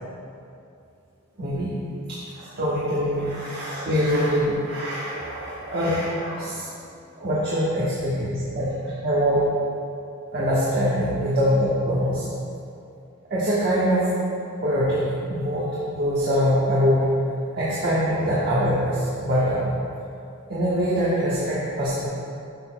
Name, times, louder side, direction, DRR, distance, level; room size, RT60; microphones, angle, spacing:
voice 1, 1.4-1.7 2.1-6.7 7.1-9.4 10.3-12.3 13.3-14.1 14.6-17.1 17.5-19.7 20.5-22.1, equal, 50° right, -9 dB, 1.3 m, -23 dB
11.5 x 6.9 x 2.3 m, 2.6 s
head